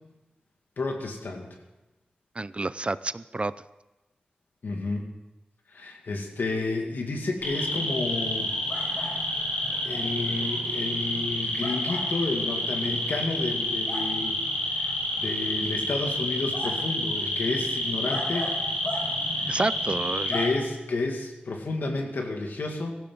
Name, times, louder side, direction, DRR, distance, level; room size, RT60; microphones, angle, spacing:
voice 1, 0.8-1.5 4.6-5.1 5.7-8.5 8.9-9.2 9.8-14.4 14.7-18.6 19.4-19.6 20.3-23.0, left 3 dB, 80° left, 2 dB, 2.2 m, -31 dB
voice 2, 2.4-3.5 19.5-20.3, right 2 dB, 35° right, 16 dB, 0.5 m, -29 dB
sound 1, 7.4-20.5, left 1 dB, 60° left, 4.0 m, -29 dB
17.0 x 14.0 x 3.9 m, 1.0 s
cardioid pair, 45°, 3 cm